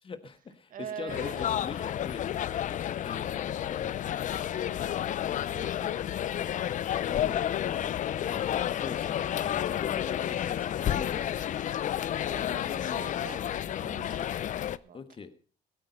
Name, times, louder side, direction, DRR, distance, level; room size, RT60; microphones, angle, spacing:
voice 1, 0.0-4.0 7.1-7.9 8.2-11.4 12.3-13.0 14.9-15.3, left 5 dB, 30° left, 11 dB, 1.4 m, -43 dB
voice 2, 0.7-1.5 5.3-6.2 12.3-14.3 14.7-15.0, right 8 dB, 55° right, 9 dB, 1.8 m, -44 dB
sound 1, 1.1-14.8, left 11 dB, 50° left, 0.5 m, -31 dB
17.0 x 9.0 x 5.3 m, 0.41 s
cardioid pair, 110°, 17 cm